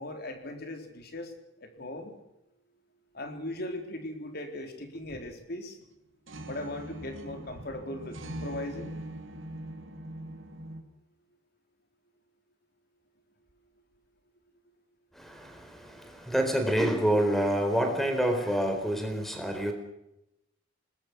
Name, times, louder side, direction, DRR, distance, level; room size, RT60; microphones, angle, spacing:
voice 1, 0.0-1.3 1.6-2.1 3.1-5.8 6.4-8.9, left 1 dB, 50° left, 5 dB, 4.0 m, -38 dB
sound 1, 4.9-5.4 5.8-5.9 6.3-10.8, right 1 dB, 80° right, 3.2 m, -42 dB
voice 2, 15.1-19.7, right 1 dB, ahead, 5 dB, 4.3 m, -27 dB
26.0 x 20.5 x 6.2 m, 0.86 s
head